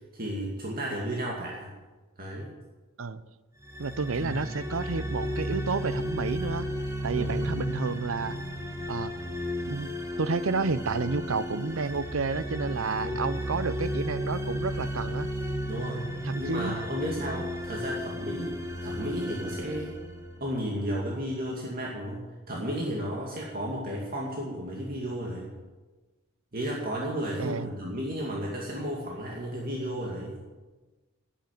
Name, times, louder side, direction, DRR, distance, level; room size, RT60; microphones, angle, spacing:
voice 1, 0.1-1.7 2.2-2.5 4.2-4.3 7.1-7.5 13.0-13.3 15.7-16.1 16.4-18.6 18.8-19.9 20.4-25.5 26.5-30.4, equal, 45° right, -2 dB, 2.4 m, -33 dB
sound 1, 3.6-20.7, equal, 15° right, 1.7 m, -34 dB
voice 2, 3.8-6.7 7.0-8.4 8.9-9.1 9.7-9.9 10.2-15.3 16.2-16.8 27.4-27.7, right 4 dB, 85° right, 15 dB, 0.7 m, -30 dB
12.0 x 10.5 x 9.2 m, 1.2 s
head